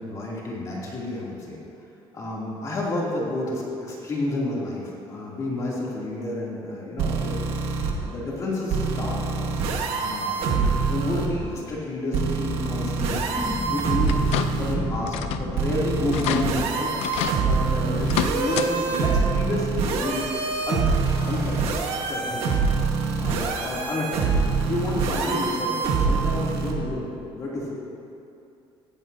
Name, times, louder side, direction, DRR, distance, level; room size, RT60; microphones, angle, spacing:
voice 1, 0.0-1.6 2.1-10.6 10.9-13.3 13.7-16.9 17.4-20.3 20.7-21.6 22.1-22.5 23.2-24.3 24.7-27.7, left 2 dB, 35° left, -5 dB, 2.9 m, -30 dB
sound 1, 7.0-7.9 8.7-11.3 12.1-14.8 15.6-26.7, right 4 dB, 70° right, 1.6 m, -25 dB
sound 2, 13.4-22.2 22.5-22.6 22.8-23.9 24.1-24.2, left 1 dB, 10° left, 1.3 m, -36 dB
sound 3, 14.1-14.7 15.1-15.5 15.8-15.9 16.1-16.4 17.0-17.4 18.0-18.7 19.1-19.2 20.6-20.7 21.2-21.3, left 10 dB, 90° left, 0.6 m, -28 dB
17.0 x 15.0 x 2.8 m, 2.7 s
cardioid pair, 155°, 10 cm